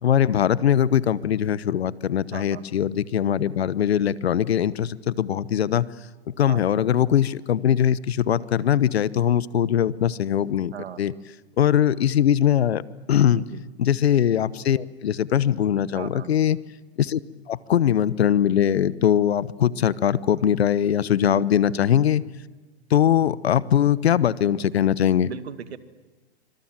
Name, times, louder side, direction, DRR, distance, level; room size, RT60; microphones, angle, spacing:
voice 1, 0.0-5.9 6.4-11.1 11.6-12.8 13.1-13.4 13.8-16.6 17.0-17.2 17.5-22.2 22.9-25.3, left 10 dB, 70° left, 19 dB, 1.1 m, -21 dB
voice 2, 2.3-2.6 6.5-6.7 10.7-11.0 13.3-13.6 15.9-16.3 21.2-21.4 25.3-25.8, right 8 dB, 75° right, 12 dB, 2.0 m, -37 dB
25.5 x 25.0 x 7.5 m, 1.2 s
hypercardioid pair, 120°, 32 cm